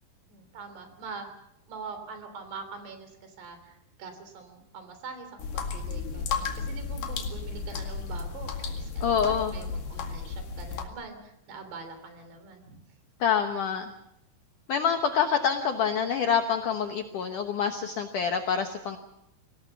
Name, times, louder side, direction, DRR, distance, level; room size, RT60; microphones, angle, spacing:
voice 1, 0.3-1.3 1.7-12.8, right 4 dB, 65° right, 8 dB, 5.3 m, -43 dB
sound 1, 5.4-10.9, left 5 dB, 55° left, 3.4 m, -33 dB
voice 2, 9.0-9.5 13.2-13.9 14.7-19.0, left 7 dB, 70° left, 6 dB, 2.0 m, -26 dB
25.0 x 18.5 x 7.1 m, 0.83 s
omnidirectional pair, 5.3 m